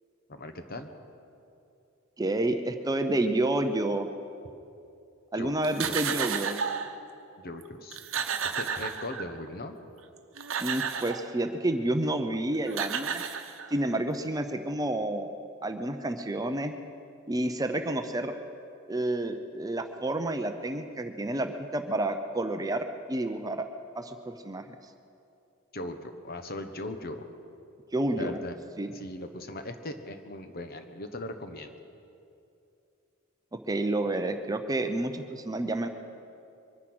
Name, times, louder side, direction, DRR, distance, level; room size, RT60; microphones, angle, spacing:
voice 1, 0.3-0.9 5.3-5.5 5.8-6.0 7.4-8.0 8.6-9.8 25.7-27.2 28.2-28.6 28.9-31.7, left 1 dB, 45° left, 8 dB, 1.0 m, -39 dB
voice 2, 2.2-4.1 5.3-6.6 10.6-13.2 13.7-15.3 15.6-16.7 17.3-18.3 18.9-23.6 23.9-24.6 27.9-28.4 28.8-28.9 33.7-35.9, right 1 dB, 15° right, 7 dB, 0.6 m, -29 dB
sound 1, 5.6-6.9 7.6-7.7 7.9-9.5 10.2-11.3 12.3-12.4 12.7-13.9, right 7 dB, 65° right, 0.9 m, -32 dB
23.5 x 9.8 x 6.1 m, 2.7 s
head